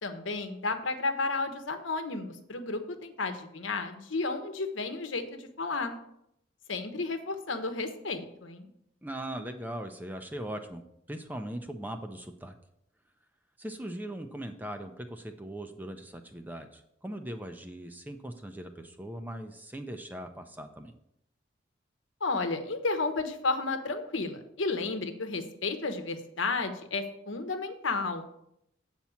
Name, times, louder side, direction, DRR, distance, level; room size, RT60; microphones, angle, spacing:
voice 1, 0.0-5.9 6.7-8.7 22.2-28.3, left 3 dB, 80° left, 6 dB, 1.0 m, -32 dB
voice 2, 9.0-10.8 11.1-12.5 13.6-20.9, right 1 dB, 10° right, 6 dB, 0.5 m, -40 dB
8.4 x 4.4 x 7.0 m, 0.76 s
head